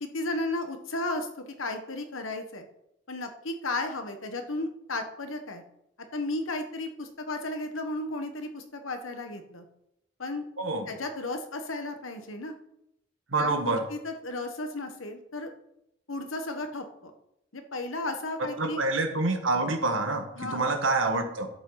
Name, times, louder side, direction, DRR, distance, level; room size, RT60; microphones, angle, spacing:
voice 1, 0.0-2.7 3.1-5.6 6.1-9.6 10.2-10.4 10.9-12.5 13.4-15.5 16.1-17.1 17.5-18.8 20.4-20.7, left 2 dB, 90° left, 6 dB, 1.4 m, -34 dB
voice 2, 10.6-10.9 13.3-13.8 18.6-21.5, right 3 dB, 80° right, 5 dB, 1.6 m, -27 dB
11.5 x 8.3 x 4.0 m, 0.82 s
head